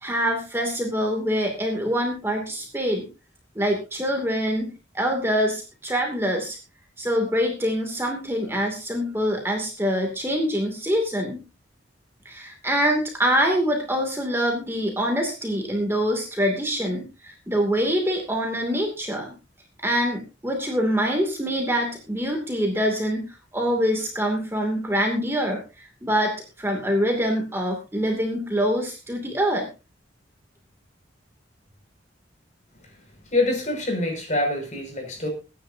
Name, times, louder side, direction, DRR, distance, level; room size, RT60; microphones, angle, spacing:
voice 1, 0.0-3.1 3.5-6.6 7.0-11.4 12.2-19.3 19.8-23.3 23.5-29.7, equal, 10° right, 1 dB, 2.6 m, -25 dB
voice 2, 33.3-35.3, left 2 dB, 40° left, 3 dB, 6.0 m, -25 dB
24.0 x 10.5 x 2.8 m, 0.31 s
head